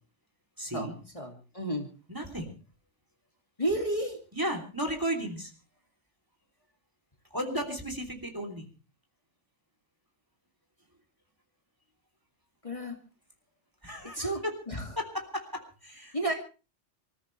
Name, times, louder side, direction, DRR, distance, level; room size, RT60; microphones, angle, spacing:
voice 1, 0.6-1.0 2.1-2.5 4.3-5.5 7.3-8.7 13.8-14.6 15.0-16.3, equal, 15° right, 4 dB, 3.2 m, -34 dB
voice 2, 1.1-1.9 3.6-4.2 12.6-13.0 14.1-14.8 16.1-16.3, right 1 dB, 25° left, 2 dB, 2.5 m, -31 dB
26.5 x 14.5 x 3.2 m, 0.33 s
omnidirectional pair, 1.2 m